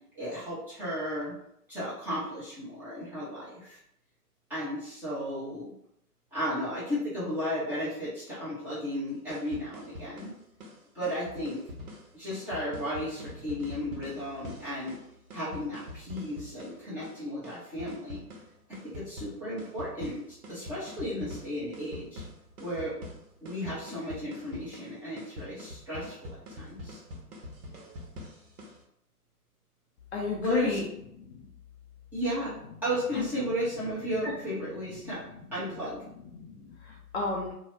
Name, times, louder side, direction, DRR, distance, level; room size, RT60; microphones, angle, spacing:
voice 1, 0.1-1.4 1.7-3.8 4.5-5.7 6.3-10.3 10.9-11.6 12.1-15.0 15.3-18.2 18.7-22.2 22.6-22.9 23.4-27.0 30.3-30.8 32.1-32.6 32.8-35.2 35.5-36.0, equal, 5° right, -13 dB, 0.8 m, -34 dB
sound 1, 9.1-28.8, left 1 dB, 65° right, 1.0 m, -45 dB
voice 2, 30.1-30.8 31.3-31.4 33.1-33.2 36.3-37.5, left 4 dB, 45° left, -2 dB, 0.6 m, -31 dB
2.8 x 2.2 x 3.1 m, 0.76 s
figure-of-eight pair, 130°, 47 cm